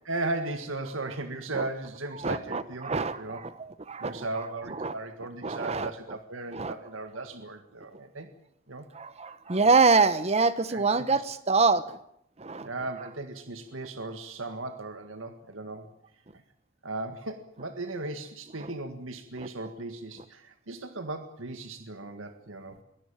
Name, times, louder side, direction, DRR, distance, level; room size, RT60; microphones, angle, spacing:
voice 1, 0.0-3.4 4.0-8.3 8.7-8.9 10.7-11.2 12.6-15.9 16.8-22.8, right 2 dB, 85° right, 7 dB, 1.8 m, -37 dB
voice 2, 2.2-4.3 4.8-4.9 5.4-5.9 6.5-6.7 8.9-12.0 12.4-12.7 18.6-18.7 19.4-19.5, right 4 dB, 30° right, 14 dB, 0.9 m, -25 dB
23.0 x 18.0 x 8.8 m, 0.76 s
head